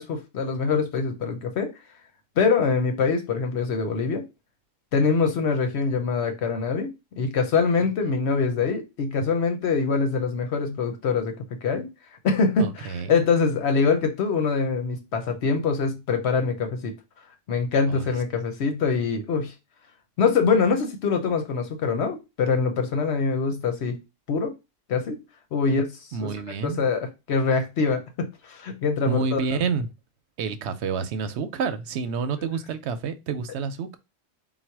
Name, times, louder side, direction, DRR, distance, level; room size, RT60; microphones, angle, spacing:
voice 1, 0.0-1.7 2.4-4.2 4.9-6.9 7.2-11.3 11.6-11.9 12.2-16.9 17.5-19.5 20.2-24.0 24.3-24.5 24.9-25.2 25.5-25.9 26.2-26.3 26.6-29.6, left 5 dB, 85° left, 1.1 m, -24 dB
voice 2, 12.6-13.2 17.9-18.1 25.7-25.8 26.1-26.8 29.1-29.9 30.4-34.0, right 5 dB, 90° right, 0.9 m, -28 dB
4.1 x 2.2 x 4.4 m
omnidirectional pair, 1.1 m